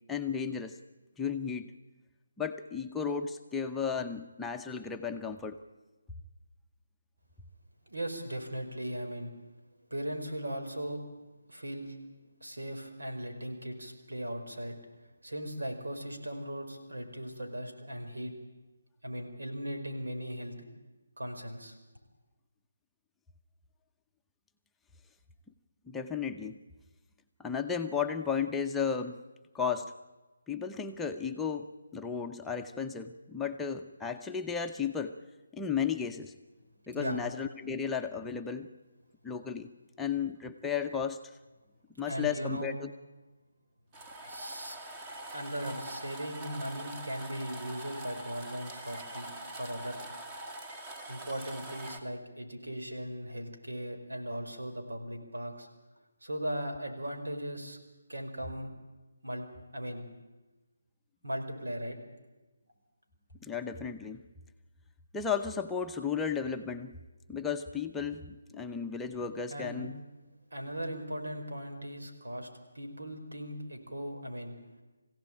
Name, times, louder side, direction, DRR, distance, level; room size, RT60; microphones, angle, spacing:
voice 1, 0.1-0.8 1.2-1.7 2.4-5.6 25.9-26.6 27.4-29.2 29.5-29.9 30.5-35.2 35.5-36.3 36.9-38.7 39.2-39.7 40.0-41.2 42.0-42.9 63.4-64.2 65.1-67.0 67.3-70.0, left 6 dB, 5° left, 3 dB, 0.8 m, -34 dB
voice 2, 7.9-9.3 9.9-11.0 11.5-12.0 12.4-14.7 15.2-18.3 19.0-20.5 21.2-21.7 36.9-37.2 42.0-42.7 44.3-44.8 45.3-49.3 49.5-50.0 51.1-55.7 56.2-57.8 58.1-58.7 59.2-59.5 59.7-60.1 61.2-62.0 69.5-69.9 70.5-72.5 72.7-74.5, equal, 85° right, 4 dB, 5.0 m, -38 dB
sound 1, 43.9-52.0, right 1 dB, 20° right, 2.0 m, -44 dB
23.5 x 16.5 x 8.9 m, 1.2 s
figure-of-eight pair, 160°, 0 cm